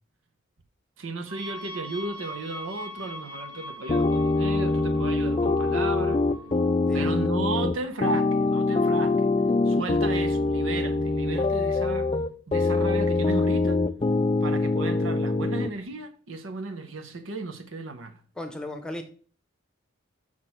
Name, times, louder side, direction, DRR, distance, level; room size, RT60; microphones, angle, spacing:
voice 1, 1.0-6.2 6.9-9.3 9.6-12.1 12.5-13.8 14.4-18.2, right 3 dB, 90° right, 1.0 m, -34 dB
sound 1, 1.3-7.7, left 1 dB, 25° right, 1.0 m, -42 dB
sound 2, 3.9-15.7, left 3 dB, 25° left, 0.3 m, -24 dB
voice 2, 6.9-7.2 18.4-19.0, left 1 dB, 5° left, 0.8 m, -36 dB
6.1 x 6.0 x 4.4 m
head